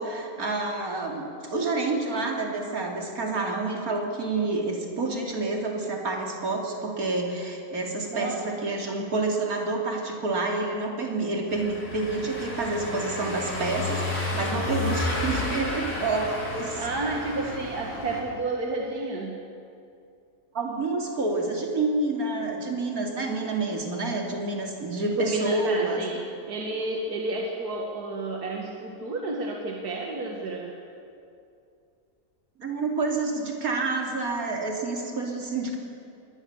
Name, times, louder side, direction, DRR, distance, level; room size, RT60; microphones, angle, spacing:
voice 1, 0.0-16.8 17.4-17.5 20.5-26.0 32.6-35.8, right 3 dB, 70° right, 1 dB, 3.3 m, -28 dB
Car passing by / Engine, 11.5-18.2, left 2 dB, 85° left, 4.3 m, -31 dB
voice 2, 16.7-19.4 25.2-26.2 26.5-30.7, right 2 dB, 85° right, 0 dB, 2.3 m, -31 dB
22.5 x 19.0 x 7.2 m, 2.5 s
omnidirectional pair, 1.6 m